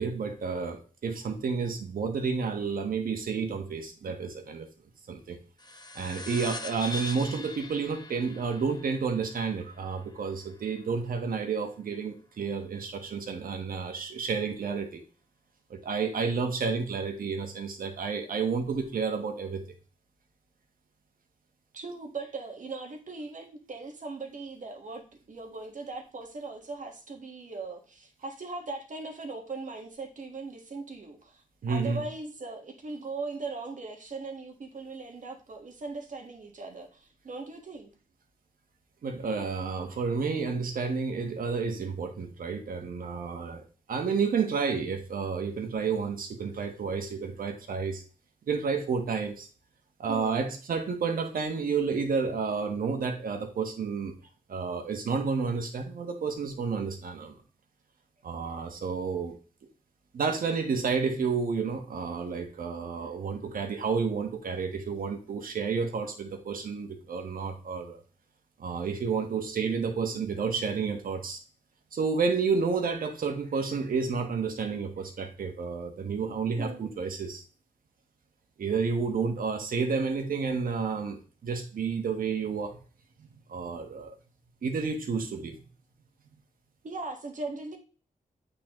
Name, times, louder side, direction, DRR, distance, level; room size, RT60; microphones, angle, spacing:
voice 1, 0.0-4.7 5.1-5.4 5.9-15.0 15.7-19.6 31.6-32.0 39.0-48.0 48.5-49.5 50.0-54.1 54.5-57.3 58.2-59.4 60.1-68.0 68.6-71.4 71.9-77.4 78.6-82.8 83.2-84.1 84.6-85.6, right 5 dB, 75° right, 1.3 m, -30 dB
sound 1, 5.6-10.5, left 2 dB, 30° left, 0.9 m, -41 dB
voice 2, 21.7-37.9 50.1-50.5 76.6-77.0 86.8-87.8, right 3 dB, 60° right, 1.5 m, -39 dB
8.4 x 3.9 x 3.0 m
cardioid pair, 60°, 15 cm